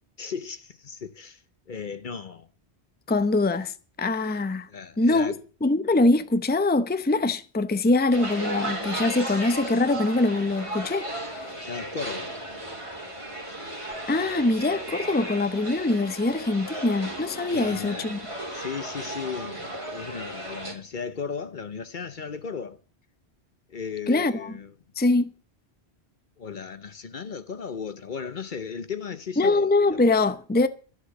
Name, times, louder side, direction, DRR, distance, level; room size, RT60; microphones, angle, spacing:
voice 1, 0.2-2.5 4.7-5.4 11.6-12.4 17.5-22.8 23.7-24.7 26.4-30.0, left 6 dB, 50° left, 0.9 m, -36 dB
voice 2, 3.1-4.7 5.0-5.3 5.6-11.1 14.1-18.2 24.1-24.5 25.0-25.3 29.4-30.7, left 2 dB, 10° left, 0.7 m, -23 dB
sound 1, 8.1-20.7, right 1 dB, 30° right, 3.3 m, -35 dB
12.0 x 8.2 x 8.0 m
omnidirectional pair, 1.1 m